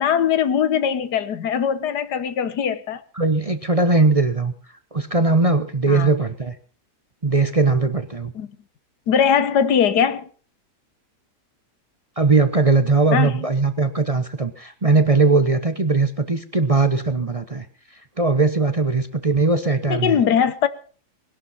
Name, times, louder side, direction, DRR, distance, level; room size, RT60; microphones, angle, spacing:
voice 1, 0.0-3.0 5.9-6.1 8.4-8.5 9.1-10.3 13.1-13.5 19.9-20.7, left 8 dB, 85° left, 1.7 m, -20 dB
voice 2, 3.2-4.5 4.9-6.5 7.2-8.3 12.2-17.6 18.2-20.2, right 3 dB, 25° right, 0.9 m, -19 dB
20.0 x 11.5 x 5.7 m
omnidirectional pair, 1.7 m